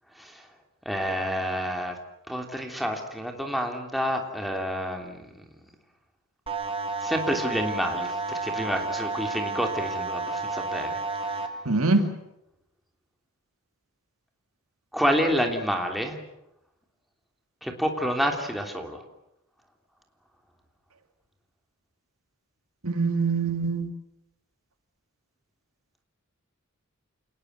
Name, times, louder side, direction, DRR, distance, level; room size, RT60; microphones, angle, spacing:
voice 1, 0.8-1.9 2.3-5.3 7.0-11.4 14.9-16.2 17.6-19.0, equal, ahead, 2 dB, 3.1 m, -29 dB
sound 1, 6.5-11.5, right 3 dB, 25° right, 2.4 m, -31 dB
voice 2, 11.7-12.1 22.8-23.9, right 3 dB, 75° right, 7 dB, 2.5 m, -24 dB
28.5 x 19.5 x 8.1 m, 0.85 s
head